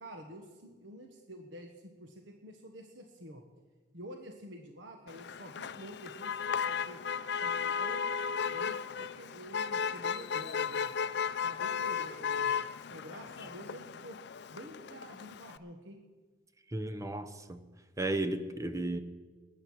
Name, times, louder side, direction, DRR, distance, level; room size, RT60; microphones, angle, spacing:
voice 1, 0.0-3.4 3.9-8.1 8.5-10.9 11.4-12.5 12.9-14.2 14.5-16.0, equal, 75° right, 3 dB, 1.3 m, -48 dB
Motor vehicle (road), 5.1-15.6, left 6 dB, 60° left, 0.4 m, -35 dB
voice 2, 16.7-17.6 18.0-19.0, right 2 dB, 15° right, 9 dB, 0.8 m, -34 dB
19.5 x 8.9 x 6.3 m, 1.3 s
head